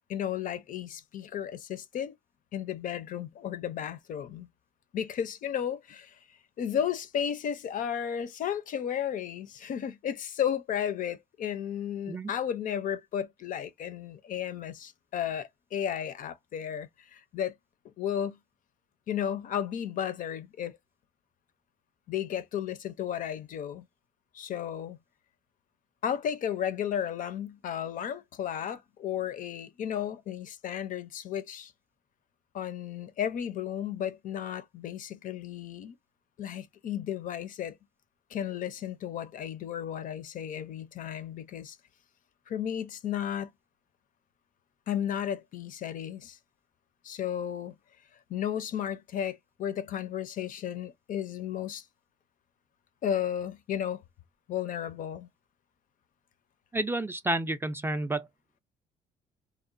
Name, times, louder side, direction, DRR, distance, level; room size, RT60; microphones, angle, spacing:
voice 1, 0.1-2.1 2.5-4.5 4.9-6.2 6.6-17.6 17.8-18.4 19.1-20.8 22.1-23.8 24.3-25.0 26.0-31.7 32.5-36.0 36.4-37.8 38.3-41.8 42.5-43.5 44.9-46.4 47.0-47.8 48.3-51.8 53.0-54.0 54.5-55.3, left 9 dB, 55° left, 0.4 m, -33 dB
voice 2, 56.7-58.3, right 2 dB, 15° right, 0.3 m, -30 dB
2.9 x 2.1 x 2.4 m
cardioid pair, 110°, 17 cm